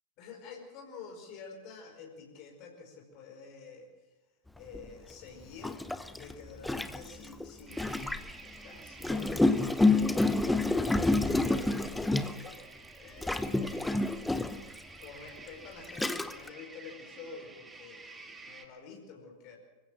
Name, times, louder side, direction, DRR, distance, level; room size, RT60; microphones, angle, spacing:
voice 1, 0.2-3.9 4.6-5.8 6.1-14.5 15.0-19.6, left 5 dB, 40° left, 2 dB, 5.1 m, -49 dB
Gurgling, 4.7-4.9 5.6-8.4 9.0-12.6 13.2-14.7 15.4-15.5 15.9-16.5, left 2 dB, 5° left, 0.9 m, -28 dB
sound 1, 7.7-18.7, right 3 dB, 15° right, 2.4 m, -51 dB
25.0 x 15.5 x 7.5 m, 1.1 s
figure-of-eight pair, 90°, 0 cm